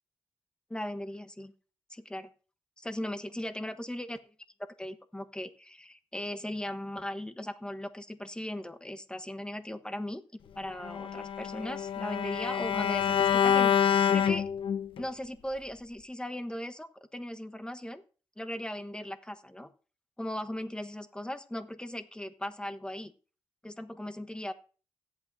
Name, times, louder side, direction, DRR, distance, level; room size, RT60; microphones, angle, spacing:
voice 1, 0.7-1.5 1.9-2.3 2.8-4.2 4.8-14.5 15.0-18.0 18.4-19.7 20.2-23.1 23.6-24.5, left 1 dB, 10° left, 8 dB, 1.1 m, -38 dB
Bowed string instrument, 10.8-15.0, left 8 dB, 70° left, 0.9 m, -27 dB
16.5 x 8.5 x 2.6 m, 0.37 s
supercardioid pair, 55°, 9 cm